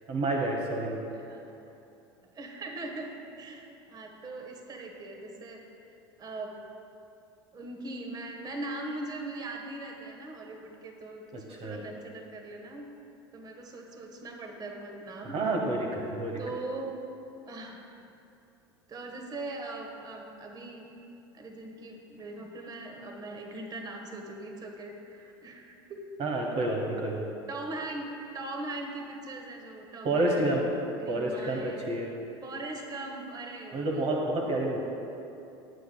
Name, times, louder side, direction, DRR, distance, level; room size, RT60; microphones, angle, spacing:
voice 1, 0.1-1.0 11.3-11.8 15.3-16.4 26.2-27.2 30.0-30.6 31.1-31.6 31.9-32.1 33.7-34.8, right 2 dB, 45° right, 0 dB, 1.2 m, -29 dB
voice 2, 1.1-1.7 2.3-5.6 6.2-6.6 7.5-12.9 13.3-15.4 16.4-17.0 17.5-17.8 18.9-20.9 21.3-26.0 27.5-30.6 31.0-31.9 32.4-34.1 34.5-34.6, right 2 dB, 30° right, 2 dB, 1.3 m, -40 dB
16.0 x 8.3 x 2.3 m, 2.8 s
hypercardioid pair, 85°, 13 cm